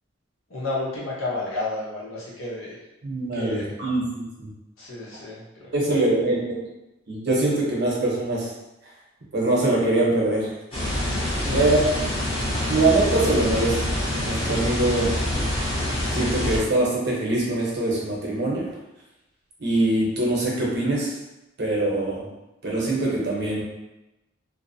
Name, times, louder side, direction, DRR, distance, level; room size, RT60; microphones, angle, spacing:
voice 1, 0.5-2.8 3.3-3.7 4.8-5.4 5.8-6.1 11.4-11.9, left 2 dB, 90° left, -6 dB, 0.8 m, -32 dB
voice 2, 3.0-4.5 5.7-6.4 7.1-8.5 9.3-10.5 11.5-11.9 12.7-13.8 14.2-15.1 16.1-18.6 19.6-21.1 21.6-22.3 22.6-23.6, right 2 dB, 55° right, -4 dB, 0.7 m, -23 dB
sound 1, 10.7-16.6, left 1 dB, 30° left, 0.8 m, -26 dB
2.5 x 2.0 x 2.6 m, 0.95 s
head